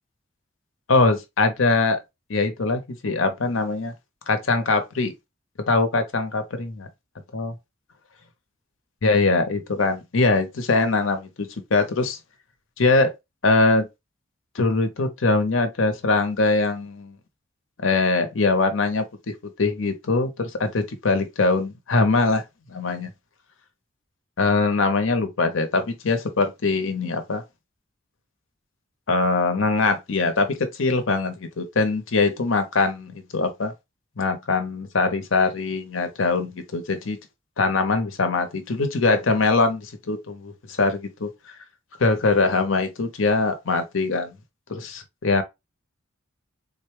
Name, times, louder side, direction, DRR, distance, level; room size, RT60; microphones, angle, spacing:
voice 1, 0.9-2.0 2.3-3.9 4.3-5.1 5.7-6.9 7.3-7.5 9.0-12.2 12.8-13.1 13.4-13.9 14.5-17.1 17.8-19.1 19.6-22.4 22.7-23.1 24.4-27.4 29.1-33.7 34.2-37.2 37.6-41.3 42.0-44.3 44.7-45.4, left 3 dB, 80° left, 0.8 m, -22 dB
3.8 x 2.2 x 3.1 m
head